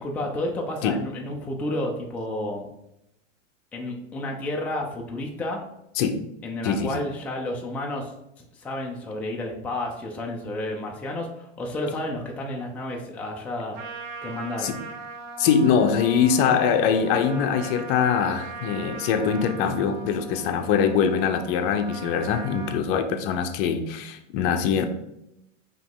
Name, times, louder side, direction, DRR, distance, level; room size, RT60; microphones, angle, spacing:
voice 1, 0.0-2.7 3.7-5.6 6.4-8.1 8.6-13.8 14.2-14.8, left 1 dB, 5° left, 0 dB, 0.4 m, -31 dB
voice 2, 6.6-6.9 14.6-14.8 15.4-24.9, left 7 dB, 45° left, 8 dB, 0.7 m, -23 dB
Trumpet, 13.7-22.8, right 4 dB, 70° right, 0.9 m, -40 dB
4.7 x 3.0 x 3.7 m, 0.84 s
hypercardioid pair, 115°, 39 cm